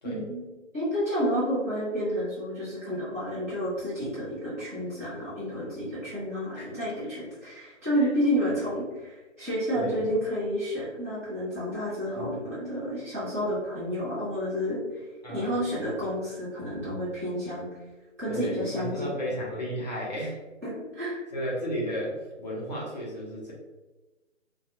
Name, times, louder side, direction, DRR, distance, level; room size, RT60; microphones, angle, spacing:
voice 1, 0.0-0.4 0.7-15.0 15.3-17.7 18.2-19.1 20.6-21.2, equal, 15° right, -11 dB, 0.8 m, -30 dB
voice 2, 9.7-10.1 12.2-12.3 15.2-15.6 18.3-20.4 21.3-23.5, equal, 35° left, -5 dB, 0.7 m, -33 dB
2.4 x 2.3 x 2.8 m, 1.1 s
figure-of-eight pair, 160°, 38 cm